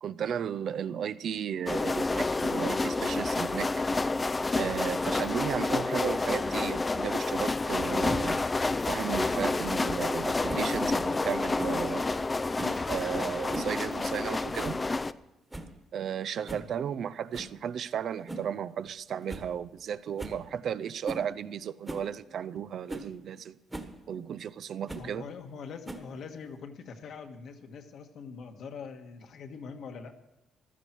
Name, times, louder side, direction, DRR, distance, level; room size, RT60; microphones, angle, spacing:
voice 1, 0.0-3.8 4.5-8.5 8.9-12.1 12.9-14.8 15.9-23.6 24.1-25.3, right 8 dB, 55° right, 0.5 m, -34 dB
sound 1, 1.7-15.1, left 3 dB, 20° left, 0.4 m, -29 dB
sound 2, 9.4-9.5 10.5-10.7 11.6-11.8 12.5-12.8 13.3-13.8 14.0-14.1 14.6-14.9 15.2-15.3 15.5-15.8 16.5-16.7 17.3-17.6 18.3-18.5 18.9-19.0 19.3-19.5 19.8-19.9 20.2-20.4 21.0-21.3 21.9-22.1 22.6-22.7 22.9-23.1 23.7-23.9 24.9-25.1 25.9-26.2, right 2 dB, 10° right, 1.4 m, -39 dB
voice 2, 25.0-30.2, left 5 dB, 60° left, 1.5 m, -43 dB
15.0 x 12.5 x 4.5 m
cardioid pair, 125°, 0 cm